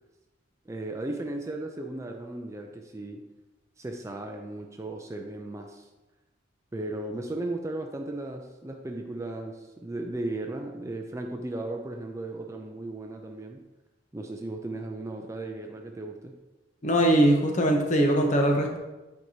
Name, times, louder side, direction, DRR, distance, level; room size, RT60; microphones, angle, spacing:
voice 1, 0.7-3.2 3.8-5.9 6.7-13.6 14.1-16.3, right 2 dB, 15° right, 3 dB, 0.4 m, -36 dB
voice 2, 16.8-18.8, right 1 dB, 40° left, 2 dB, 0.9 m, -21 dB
9.3 x 4.6 x 2.8 m, 1.1 s
head